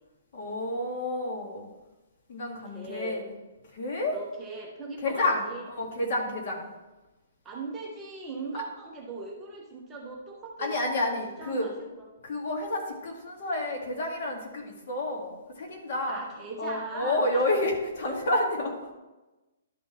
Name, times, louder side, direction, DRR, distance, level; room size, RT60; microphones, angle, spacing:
voice 1, 0.3-1.6 2.3-3.2 3.7-4.2 5.0-6.7 10.6-11.7 12.2-16.2 16.6-18.9, left 2 dB, 45° left, 1 dB, 1.8 m, -30 dB
voice 2, 2.7-3.2 4.1-5.6 7.4-10.7 11.0-11.1 11.4-12.0 16.1-17.4 18.0-18.1, right 3 dB, 10° right, -2 dB, 1.0 m, -39 dB
12.0 x 4.2 x 4.3 m, 1.1 s
hypercardioid pair, 170°, 0 cm